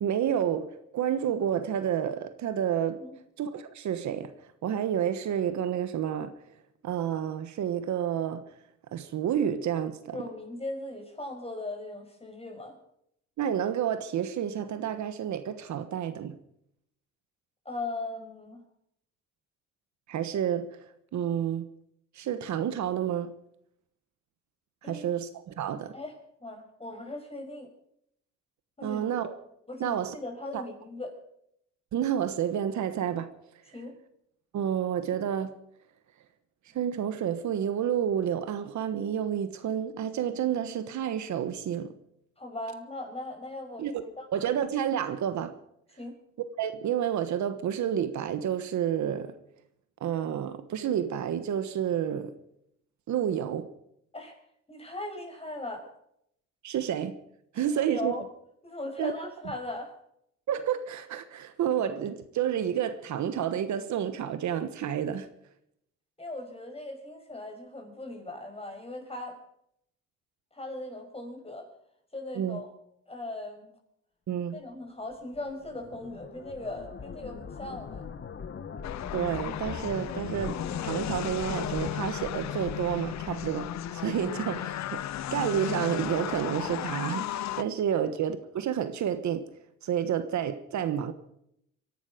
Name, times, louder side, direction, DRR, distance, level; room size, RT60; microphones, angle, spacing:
voice 1, 0.0-3.0 3.4-4.3 4.6-6.3 6.8-8.4 8.9-10.2 13.4-16.4 20.1-20.8 21.1-21.7 22.2-23.3 24.8-25.9 28.8-29.3 29.8-30.1 30.5-30.6 31.9-33.3 34.5-35.5 36.7-41.9 43.8-43.9 44.3-45.5 46.6-49.3 50.0-52.3 53.1-53.7 56.6-57.2 57.5-58.1 59.0-59.1 60.5-65.3 72.4-72.6 74.3-74.6 79.1-85.0 85.3-89.5 89.8-91.1, right 9 dB, 70° right, 1.3 m, -30 dB
voice 2, 10.1-12.8 17.7-18.6 24.8-25.1 25.9-26.1 26.4-27.7 28.8-29.0 29.7-31.2 33.7-34.0 42.4-44.3 46.0-46.1 54.1-54.4 54.7-55.9 57.7-58.2 58.6-60.0 66.2-69.4 70.5-71.7 72.1-72.7 73.1-73.7 74.5-78.1 87.9-88.1, left 2 dB, 20° left, 5.6 m, -39 dB
sound 1, 75.1-84.4, left 6 dB, 40° left, 1.2 m, -41 dB
sound 2, 78.8-87.6, left 12 dB, 65° left, 0.7 m, -35 dB
24.5 x 11.5 x 5.1 m
cardioid pair, 90°, 30 cm